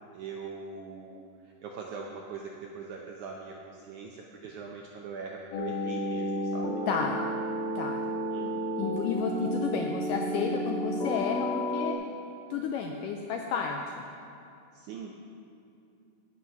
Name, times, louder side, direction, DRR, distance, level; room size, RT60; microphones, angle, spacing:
voice 1, 0.1-6.8 8.3-8.7 14.7-15.1, right 5 dB, 80° right, 0 dB, 1.7 m, -42 dB
sound 1, 5.5-11.9, equal, 70° left, 2.6 m, -32 dB
voice 2, 6.9-7.2 7.8-8.0 8.4-8.5 8.8-12.0 12.5-13.8, left 6 dB, 90° left, 2 dB, 1.9 m, -31 dB
16.5 x 6.0 x 5.8 m, 2.6 s
omnidirectional pair, 4.4 m